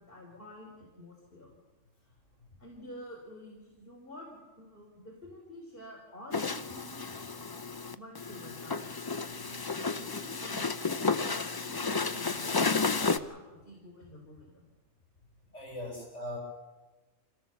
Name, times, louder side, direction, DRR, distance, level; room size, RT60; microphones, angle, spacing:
voice 1, 0.0-1.5 2.6-7.3 7.9-8.9 9.4-14.6, left 1 dB, 45° left, -1 dB, 3.9 m, -49 dB
sound 1, 6.3-13.2, left 4 dB, 30° left, 0.4 m, -32 dB
voice 2, 15.5-16.4, left 1 dB, 60° left, 1 dB, 6.9 m, -39 dB
25.5 x 17.0 x 7.1 m, 1.2 s
omnidirectional pair, 1.3 m